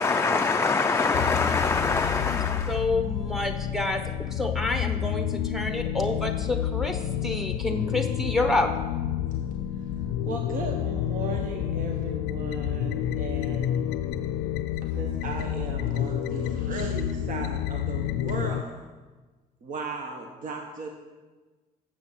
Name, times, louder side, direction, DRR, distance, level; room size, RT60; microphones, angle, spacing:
voice 1, 0.0-2.8, left 4 dB, 15° left, 6 dB, 0.4 m, -24 dB
sound 1, 1.1-18.6, left 11 dB, 85° left, 0.5 m, -29 dB
voice 2, 2.3-4.0 4.3-8.7, left 2 dB, ahead, 5 dB, 0.9 m, -28 dB
voice 3, 10.2-13.9 14.8-18.8 19.6-20.9, right 3 dB, 50° right, 2 dB, 1.1 m, -36 dB
7.3 x 6.2 x 7.3 m, 1.3 s
cardioid pair, 110°, 17 cm